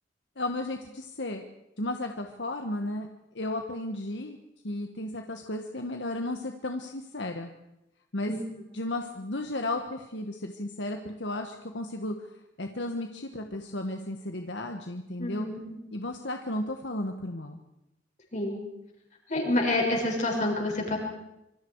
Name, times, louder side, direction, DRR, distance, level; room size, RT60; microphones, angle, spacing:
voice 1, 0.4-1.4 1.8-3.1 3.3-4.4 4.6-7.5 8.1-8.3 8.7-12.3 12.6-15.5 15.9-17.6, left 1 dB, 70° left, 4 dB, 1.6 m, -34 dB
voice 2, 15.2-15.8 18.3-18.6 19.3-21.0, left 1 dB, 40° left, 0 dB, 6.3 m, -28 dB
26.5 x 24.0 x 4.8 m, 0.88 s
head